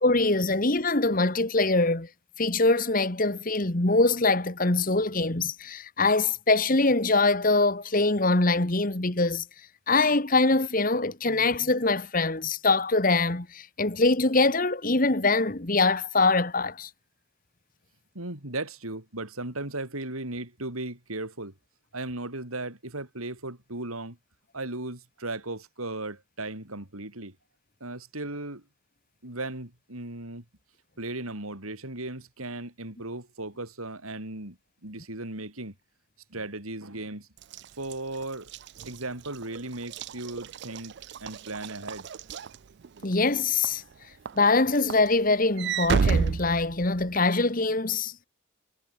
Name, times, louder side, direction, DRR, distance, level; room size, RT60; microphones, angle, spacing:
voice 1, 0.0-2.1 2.4-9.4 9.9-16.9 43.0-43.8 44.3-48.1, left 3 dB, 40° left, 1.6 m, -23 dB
voice 2, 18.1-21.5 21.9-24.2 24.5-27.4 27.8-28.6 29.2-30.4 31.0-35.7 36.3-37.3 37.8-38.5 38.8-42.1, right 2 dB, 90° right, 5.7 m, -36 dB
Walk footsteps / Slam, 37.4-43.1 43.6-43.9 44.3-47.3, right 5 dB, 50° right, 0.4 m, -31 dB
head